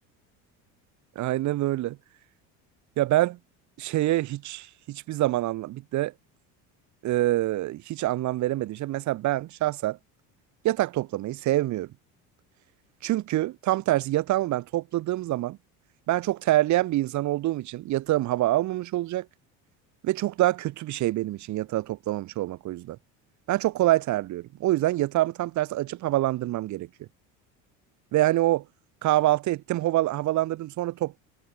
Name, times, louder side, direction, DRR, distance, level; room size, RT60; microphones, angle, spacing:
voice 1, 1.2-2.0 3.0-3.4 3.8-6.1 7.0-10.0 10.6-11.9 13.0-15.6 16.1-19.3 20.0-23.0 23.5-26.9 28.1-28.6 29.0-31.2, right 16 dB, 55° right, 4.1 m, -26 dB
cardioid pair, 145°, 35 cm